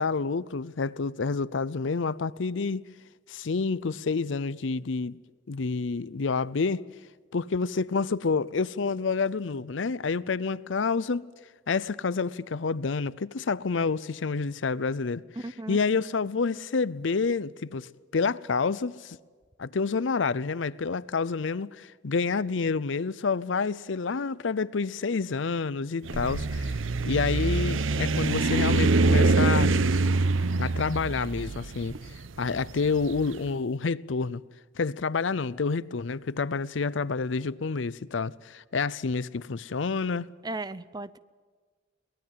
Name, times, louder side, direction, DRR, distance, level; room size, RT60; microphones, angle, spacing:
voice 1, 0.0-2.9 3.3-5.2 5.5-6.9 7.3-11.3 11.7-15.2 15.7-19.2 19.6-26.8 27.0-29.7 30.6-32.0 32.4-34.4 34.8-40.3, left 4 dB, 70° left, 0.6 m, -28 dB
voice 2, 15.4-15.8 40.4-41.2, right 2 dB, 20° right, 0.6 m, -36 dB
sound 1, 26.0-33.2, right 3 dB, 85° right, 0.8 m, -24 dB
23.0 x 19.0 x 7.6 m
head